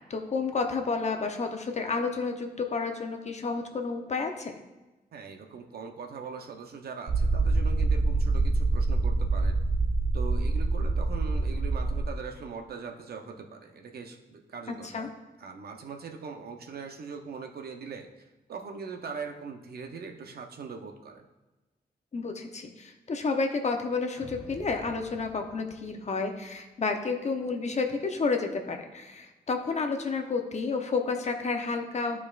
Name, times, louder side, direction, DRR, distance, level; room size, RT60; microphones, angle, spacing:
voice 1, 0.1-4.5 14.7-15.1 22.1-32.2, left 4 dB, 45° left, 4 dB, 0.8 m, -30 dB
voice 2, 5.1-9.6 10.1-15.1 15.4-18.2 18.5-21.2, right 5 dB, 70° right, 4 dB, 0.8 m, -41 dB
sound 1, 7.1-12.1, right 3 dB, 40° right, 0.6 m, -25 dB
sound 2, 24.2-26.6, left 1 dB, 10° left, 1.3 m, -49 dB
12.0 x 4.8 x 2.4 m, 1.1 s
wide cardioid pair, 105°, 17 cm